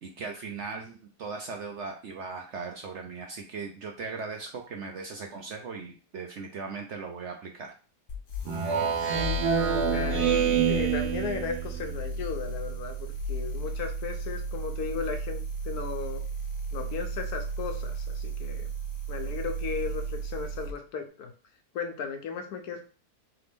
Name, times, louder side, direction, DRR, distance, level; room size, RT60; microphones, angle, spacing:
voice 1, 0.0-7.7, right 4 dB, 60° right, 3 dB, 0.7 m, -38 dB
sound 1, 8.1-20.8, right 2 dB, 55° left, 0.6 m, -34 dB
Speech synthesizer, 8.5-12.0, right 7 dB, 85° right, 1.4 m, -27 dB
voice 2, 9.8-10.3 10.6-16.2 16.7-18.7 19.1-21.3 21.7-22.8, left 6 dB, 75° left, 5 dB, 1.3 m, -35 dB
3.8 x 3.4 x 3.5 m, 0.37 s
omnidirectional pair, 1.7 m